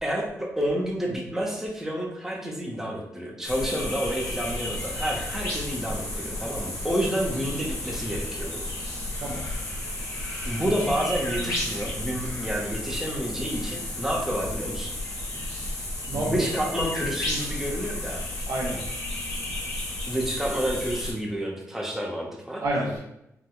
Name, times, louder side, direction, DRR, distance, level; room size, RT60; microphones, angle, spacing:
voice 1, 0.0-8.6 10.4-14.9 16.1-18.2 20.1-22.6, equal, 5° right, -2 dB, 0.6 m, -29 dB
sound 1, 3.4-21.1, left 1 dB, 90° left, 1.0 m, -32 dB
voice 2, 16.1-16.6 18.5-18.8 22.6-23.0, right 1 dB, 85° right, -4 dB, 1.2 m, -29 dB
3.6 x 2.5 x 2.3 m, 0.82 s
cardioid pair, 80°, 6 cm